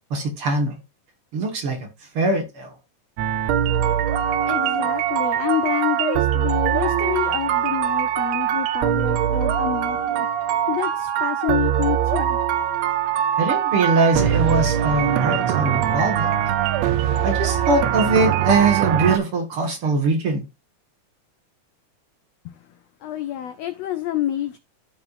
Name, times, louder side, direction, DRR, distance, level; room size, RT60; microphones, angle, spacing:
voice 1, 0.1-0.8 1.3-1.9 2.1-2.7 13.4-16.3 17.2-20.4, right 3 dB, 50° right, 2.4 m, -22 dB
sound 1, 3.2-19.2, right 10 dB, 75° right, 1.6 m, -22 dB
voice 2, 4.5-10.3 10.7-12.4 22.4-22.5 23.0-24.6, left 12 dB, 80° left, 1.5 m, -28 dB
14.5 x 5.0 x 2.5 m
omnidirectional pair, 3.7 m